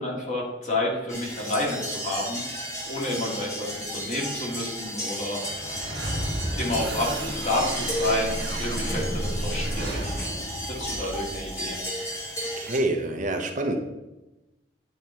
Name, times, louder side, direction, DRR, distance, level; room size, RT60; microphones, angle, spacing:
voice 1, 0.0-2.4 2.8-5.4 6.6-8.3 8.6-10.1 10.8-11.8, left 1 dB, 40° left, -3 dB, 1.9 m, -29 dB
sound 1, 1.1-12.8, equal, 15° left, 1.3 m, -34 dB
sound 2, 5.3-11.6, right 1 dB, 80° right, 1.7 m, -32 dB
voice 2, 10.7-11.2 12.1-12.2 12.6-13.8, right 2 dB, 45° right, 4 dB, 0.8 m, -28 dB
9.4 x 4.0 x 4.4 m, 1.0 s
head